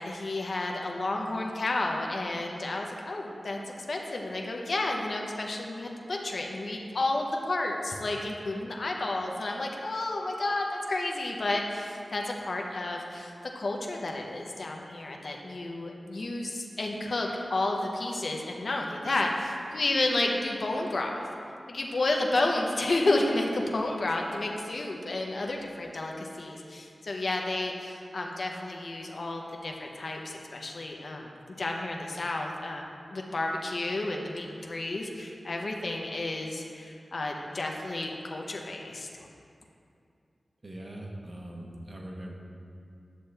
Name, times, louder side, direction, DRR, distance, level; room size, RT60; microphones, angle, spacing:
voice 1, 0.0-21.2 21.7-31.3 31.6-39.3, left 2 dB, 65° left, 1 dB, 0.8 m, -31 dB
voice 2, 40.6-42.3, right 1 dB, 40° right, -1 dB, 1.2 m, -41 dB
10.0 x 6.8 x 3.4 m, 2.5 s
wide cardioid pair, 95°, 0 cm